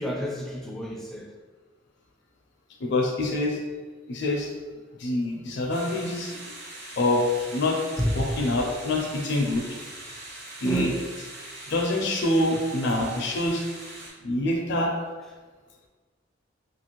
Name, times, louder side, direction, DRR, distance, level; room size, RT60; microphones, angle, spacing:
voice 1, 0.0-1.3 8.0-8.3 10.6-11.1 13.0-13.1 14.3-14.5, equal, ahead, -1 dB, 0.3 m, -29 dB
voice 2, 2.8-3.6 4.1-4.5 5.0-6.4 7.0-7.8 8.2-9.6 10.6-10.9 11.7-13.6 14.2-14.9, left 1 dB, 60° left, 0 dB, 0.5 m, -25 dB
sound 1, 5.7-14.1, right 2 dB, 60° right, 1.0 m, -42 dB
3.0 x 2.5 x 2.9 m, 1.4 s
head